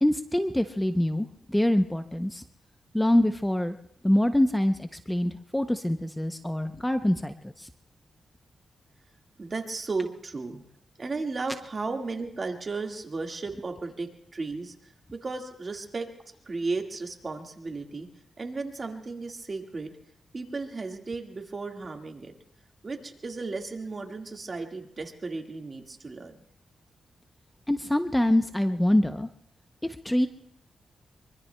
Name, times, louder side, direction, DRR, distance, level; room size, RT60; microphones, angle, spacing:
voice 1, 0.0-2.4 2.9-3.7 4.0-7.7 27.7-29.3 30.0-30.3, left 1 dB, 10° left, 8 dB, 0.6 m, -25 dB
voice 2, 9.4-10.6 11.0-14.7 15.1-16.1 16.5-18.1 18.4-19.9 20.3-22.3 22.8-26.3, right 3 dB, 40° right, 3 dB, 1.7 m, -34 dB
24.0 x 24.0 x 2.2 m, 0.72 s
cardioid pair, 90°, 0 cm